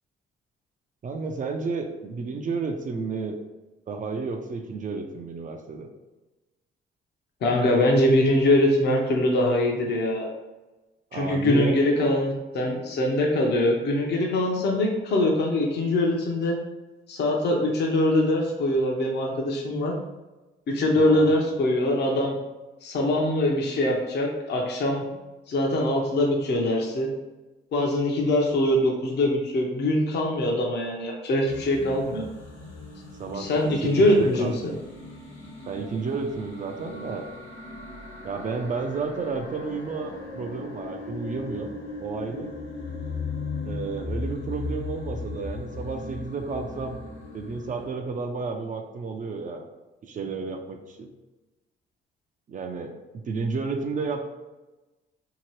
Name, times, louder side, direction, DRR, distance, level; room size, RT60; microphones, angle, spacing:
voice 1, 1.0-3.4 3.9-5.9 11.1-11.8 21.0-21.3 33.2-33.5 33.8-34.5 35.7-37.3 38.2-41.7 42.0-42.5 43.6-47.0 47.3-49.7 50.0-51.1 52.5-52.9 53.2-54.3, right 4 dB, 40° right, 4 dB, 0.4 m, -31 dB
voice 2, 7.4-10.3 11.1-16.6 17.1-19.9 20.7-22.4 22.8-25.1 25.5-27.1 27.7-32.3 33.3-34.5, left 1 dB, 55° left, 0 dB, 0.7 m, -23 dB
sound 1, 31.4-47.8, left 3 dB, 90° left, 1.0 m, -37 dB
2.8 x 2.7 x 3.0 m, 1.1 s
cardioid pair, 90°, 20 cm